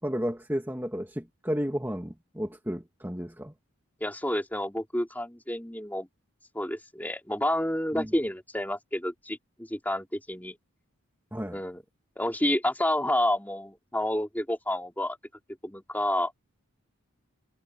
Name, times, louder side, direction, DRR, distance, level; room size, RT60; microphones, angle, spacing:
voice 1, 0.0-3.5 7.9-8.1 11.3-11.6, equal, 10° right, 2.6 m, -32 dB
voice 2, 4.0-6.1 6.5-10.6 11.5-11.8 12.2-15.2 15.6-16.3, left 1 dB, 10° left, 3.7 m, -29 dB
head